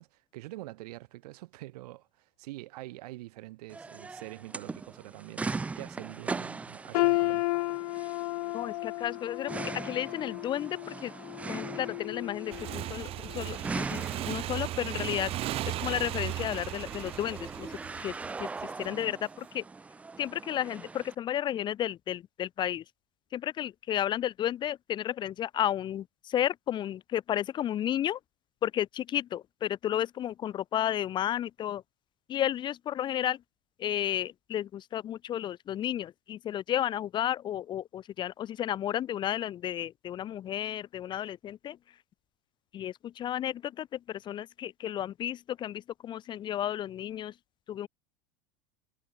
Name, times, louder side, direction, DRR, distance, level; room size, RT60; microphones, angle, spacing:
voice 1, 0.0-5.5 5.7-7.5, right 18 dB, 80° right, 4.4 m, -45 dB
sound 1, 3.7-21.1, right 4 dB, 5° right, 0.5 m, -41 dB
sound 2, 6.9-12.9 13.3-13.5 14.3-14.4, left 20 dB, 70° left, 1.7 m, -33 dB
voice 2, 8.5-11.1 11.5-15.3 15.7-18.1 18.4-18.5 18.8-19.6 20.2-22.8 23.3-28.2 28.6-31.8 32.3-33.4 33.8-41.8 42.7-47.3 47.7-47.9, left 11 dB, 25° left, 1.1 m, -32 dB
Motorcycle / Engine, 12.5-18.9, right 14 dB, 30° right, 1.2 m, -36 dB
supercardioid pair, 170°, 20 cm